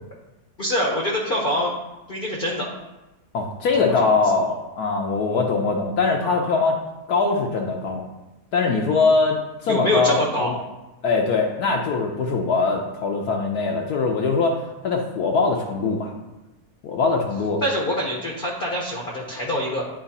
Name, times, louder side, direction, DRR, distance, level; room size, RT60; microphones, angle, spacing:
voice 1, 0.6-1.7 2.1-2.7 3.8-3.9 6.2-6.5 9.7-10.6 17.6-19.8, equal, 45° left, -2 dB, 0.8 m, -25 dB
voice 2, 3.3-6.8 7.1-8.0 8.5-10.6 11.0-14.6 14.8-16.1 16.8-17.6, left 4 dB, 75° left, 1 dB, 1.1 m, -22 dB
8.8 x 3.0 x 4.1 m, 1.0 s
omnidirectional pair, 1.7 m